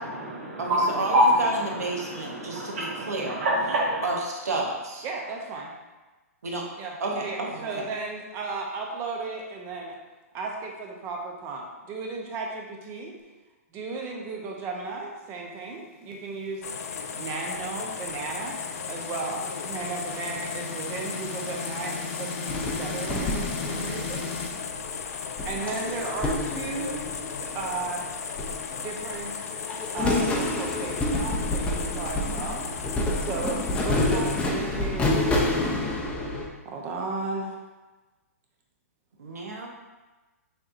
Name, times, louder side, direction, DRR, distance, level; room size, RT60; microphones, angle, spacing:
voice 1, 0.0-4.0, equal, 50° right, -6 dB, 1.4 m, -26 dB
voice 2, 0.6-3.4 4.0-5.0 6.4-6.6 7.0-7.9 39.2-39.7, right 2 dB, 80° right, 0 dB, 1.1 m, -31 dB
voice 3, 5.0-5.7 6.8-10.0 10.3-13.1 13.7-16.7 17.1-18.6 18.9-24.3 25.4-28.2 28.8-29.4 29.9-32.6 33.2-35.2 36.6-37.6, right 4 dB, 30° right, 0 dB, 0.8 m, -35 dB
sound 1, 16.4-24.5, left 4 dB, 45° left, 1.1 m, -38 dB
sound 2, 16.6-34.5, left 6 dB, 70° left, 0.5 m, -36 dB
sound 3, 22.5-24.8 25.4-27.9 28.3-29.2 29.5-36.5, left 2 dB, 15° left, 0.6 m, -28 dB
6.5 x 2.9 x 2.6 m, 1.2 s
hypercardioid pair, 130°, 8 cm